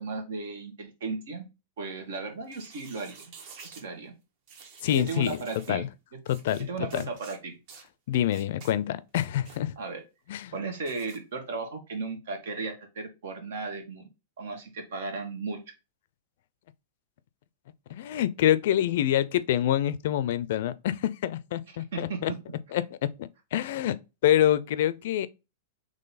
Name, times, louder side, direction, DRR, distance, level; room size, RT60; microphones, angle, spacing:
voice 1, 0.0-1.5 1.8-3.3 3.6-4.1 5.0-5.8 6.6-7.6 9.8-10.0 10.5-14.1 14.4-15.6 21.9-22.2, right 4 dB, 80° right, 1.6 m, -35 dB
sound 1, 2.4-3.9 4.5-5.7 6.3-6.6 6.9-7.4 7.7-7.9 8.3-8.7 9.1-9.6 10.8-11.2, right 5 dB, 50° right, 1.2 m, -49 dB
voice 2, 4.8-5.4 5.7-5.9 6.3-6.7 6.9-7.1 8.1-9.7 10.3-10.5 17.9-22.3 22.7-24.0 24.2-25.3, left 11 dB, 65° left, 0.4 m, -26 dB
3.9 x 3.1 x 4.1 m
supercardioid pair, 145°, 0 cm